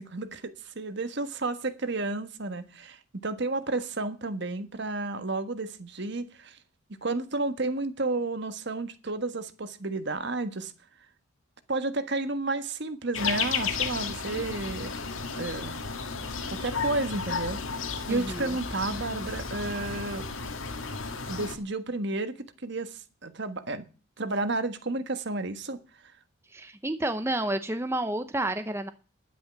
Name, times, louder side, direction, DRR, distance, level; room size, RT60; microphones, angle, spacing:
voice 1, 0.0-6.6 7.0-10.7 11.7-14.9 15.3-15.8 16.5-17.6 18.1-20.2 21.3-22.3 22.6-23.8 24.2-25.8, right 2 dB, 55° right, 10 dB, 1.5 m, -31 dB
sound 1, 13.1-21.6, left 5 dB, 80° left, 1.8 m, -33 dB
voice 2, 18.1-18.6 26.5-28.9, right 1 dB, 15° right, 9 dB, 0.8 m, -30 dB
11.0 x 9.6 x 6.0 m, 0.34 s
head